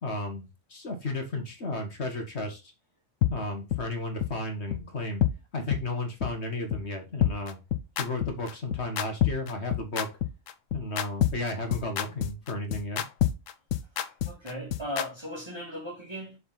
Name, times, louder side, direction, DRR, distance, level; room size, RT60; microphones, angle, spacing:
voice 1, 0.0-2.7 3.3-5.2 5.5-7.6 8.0-10.1 10.7-13.0, left 2 dB, 60° left, 1.7 m, -33 dB
sound 1, 3.2-3.3 3.7-3.8 4.2-4.3 4.7-4.8 5.2-5.3 5.7-5.8 6.2-6.3 6.7-6.8 7.2-15.1, left 10 dB, 75° left, 1.0 m, -26 dB
voice 2, 14.3-16.4, equal, 20° right, 2.5 m, -37 dB
7.2 x 4.2 x 3.9 m
omnidirectional pair, 1.3 m